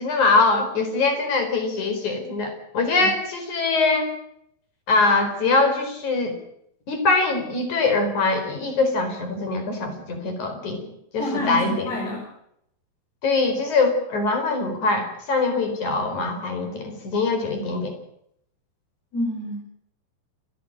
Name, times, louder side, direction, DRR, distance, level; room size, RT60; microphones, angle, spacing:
voice 1, 0.0-4.1 4.9-6.4 6.9-12.0 13.2-18.0, left 3 dB, 45° left, 6 dB, 5.6 m, -23 dB
voice 2, 11.2-12.2 19.1-19.6, left 1 dB, 70° left, -5 dB, 8.7 m, -28 dB
30.0 x 12.0 x 8.9 m, 0.74 s
omnidirectional pair, 4.8 m